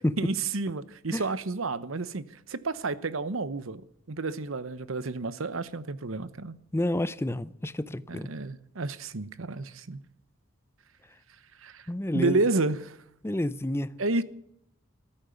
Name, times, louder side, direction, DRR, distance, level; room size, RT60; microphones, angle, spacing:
voice 1, 0.2-6.6 8.1-10.0 11.6-11.9 12.1-13.0 14.0-14.2, right 3 dB, 75° right, 1.0 m, -30 dB
voice 2, 6.7-8.3 11.9-12.4 13.2-13.9, left 1 dB, 10° left, 0.5 m, -29 dB
14.5 x 13.0 x 7.0 m
head